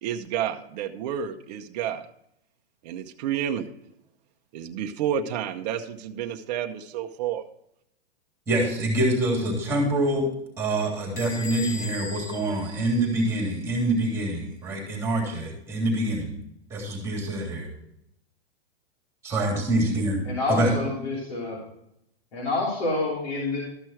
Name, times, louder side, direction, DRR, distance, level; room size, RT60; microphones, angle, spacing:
voice 1, 0.0-2.1 2.8-3.7 4.5-7.4, right 9 dB, 40° right, 5 dB, 0.8 m, -30 dB
voice 2, 8.5-10.3 10.6-16.3 16.7-17.7 19.2-20.2 20.5-20.7, right 1 dB, 10° right, -1 dB, 3.4 m, -25 dB
Bell / Door, 11.2-13.7, left 3 dB, 40° left, 2.5 m, -39 dB
voice 3, 20.2-21.6 22.3-23.6, left 3 dB, 65° left, -4 dB, 3.3 m, -27 dB
13.0 x 6.1 x 4.5 m, 0.77 s
hypercardioid pair, 155°, 33 cm